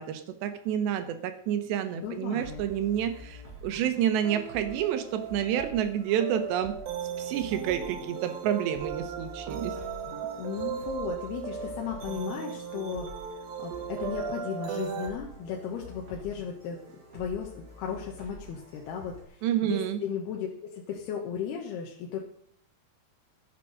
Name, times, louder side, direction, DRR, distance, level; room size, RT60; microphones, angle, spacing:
voice 1, 0.0-6.7 7.2-9.8 19.4-20.0, right 10 dB, 90° right, 9 dB, 3.4 m, -29 dB
voice 2, 2.0-2.6 10.4-13.1 13.6-16.8 17.1-22.2, left 7 dB, 75° left, 0 dB, 3.2 m, -35 dB
sound 1, 2.4-19.2, equal, 25° right, 4.3 m, -48 dB
sound 2, 4.2-15.1, right 7 dB, 65° right, 2.8 m, -37 dB
13.5 x 8.5 x 6.5 m, 0.66 s
omnidirectional pair, 4.8 m